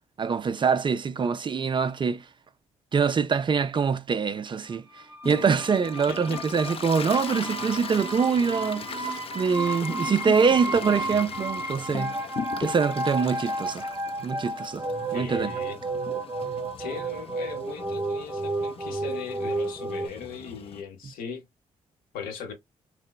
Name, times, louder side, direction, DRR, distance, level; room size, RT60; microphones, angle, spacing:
voice 1, 0.2-2.3 2.9-12.1 12.6-13.9 14.2-14.9 15.1-15.5, right 5 dB, 35° right, 0.3 m, -24 dB
sound 1, 4.9-20.1, right 2 dB, 15° right, 0.8 m, -32 dB
Toilet flush, 5.2-20.8, left 6 dB, 40° left, 0.4 m, -40 dB
voice 2, 6.1-6.4 9.9-10.0 10.2-10.3 15.1-15.8 16.8-21.4 22.1-22.5, left 6 dB, 75° left, 0.8 m, -38 dB
2.9 x 2.1 x 2.2 m
supercardioid pair, 50°, 15 cm